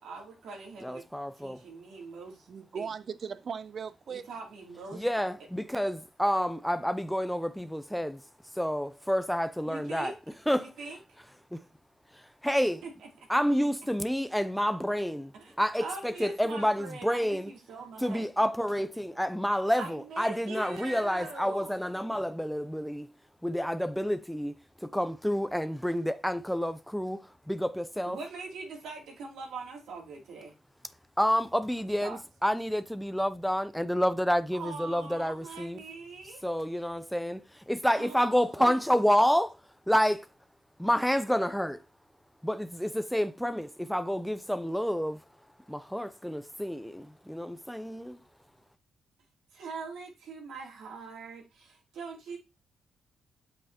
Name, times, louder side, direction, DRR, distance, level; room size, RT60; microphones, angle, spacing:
voice 1, 0.0-1.0 1.4-2.5 2.7-2.9 4.1-5.0 9.7-10.2 10.6-11.0 12.8-12.9 15.3-15.5 15.8-18.2 19.8-21.8 28.0-30.5 31.8-32.2 34.5-36.4 37.9-38.7 49.5-52.4, right 4 dB, 80° right, 2.8 m, -42 dB
voice 2, 0.8-1.6 4.9-8.2 8.6-10.1 10.5-10.7 12.4-12.8 13.3-15.3 15.6-17.5 18.0-23.1 23.4-24.5 24.8-27.2 27.5-28.2 31.2-35.8 36.4-37.4 37.7-39.5 39.9-40.2 40.8-41.8 42.4-45.2 45.7-48.2, equal, ahead, 0.4 m, -29 dB
voice 3, 2.5-4.3, right 6 dB, 50° right, 0.5 m, -38 dB
8.3 x 5.6 x 2.9 m
cardioid pair, 95°, 0 cm